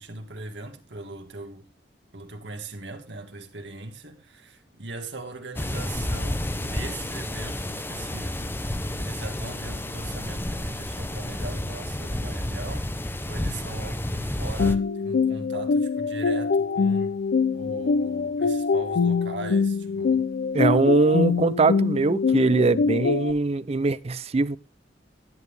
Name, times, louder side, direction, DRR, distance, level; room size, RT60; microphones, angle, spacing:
voice 1, 0.0-1.7 2.1-12.9 13.2-17.2 17.5-20.3, right 2 dB, 75° right, 1.8 m, -39 dB
sound 1, 5.5-14.7, left 1 dB, 15° left, 0.7 m, -31 dB
sound 2, 14.6-23.3, left 5 dB, 65° left, 0.4 m, -24 dB
voice 2, 20.5-24.6, right 3 dB, 35° right, 0.5 m, -22 dB
10.5 x 9.2 x 3.3 m
head